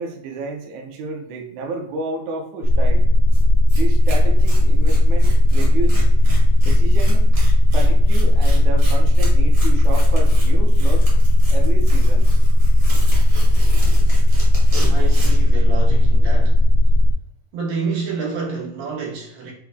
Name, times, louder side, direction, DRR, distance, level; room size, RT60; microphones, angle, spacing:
voice 1, 0.0-3.1 3.7-6.1 6.6-7.3 7.7-11.1 11.5-12.3, right 3 dB, 70° right, 1 dB, 2.0 m, -31 dB
sound 1, 2.6-17.1, left 1 dB, 80° left, 1.5 m, -14 dB
Tearing, 3.3-3.4 3.7-15.5, equal, 50° right, 1.0 m, -31 dB
voice 2, 14.7-16.6 17.5-19.5, right 3 dB, 90° right, -3 dB, 3.1 m, -28 dB
6.1 x 2.2 x 3.5 m, 0.68 s
omnidirectional pair, 3.9 m